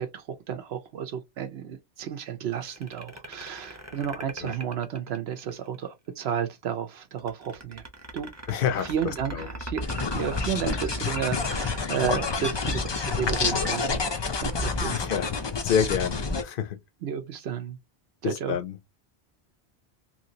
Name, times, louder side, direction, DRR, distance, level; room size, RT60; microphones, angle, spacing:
voice 1, 0.0-7.8 8.1-14.0 14.4-15.0 17.0-17.8 18.2-18.6, right 8 dB, 75° right, 0.8 m, -32 dB
sound 1, 2.6-5.8 7.2-12.7, right 2 dB, 15° right, 0.7 m, -38 dB
voice 2, 8.5-9.5 14.9-15.3 15.6-16.8 18.2-18.7, left 8 dB, 60° left, 0.8 m, -28 dB
sound 2, 9.8-16.4, left 4 dB, 40° left, 0.4 m, -28 dB
3.0 x 2.7 x 2.7 m
omnidirectional pair, 1.1 m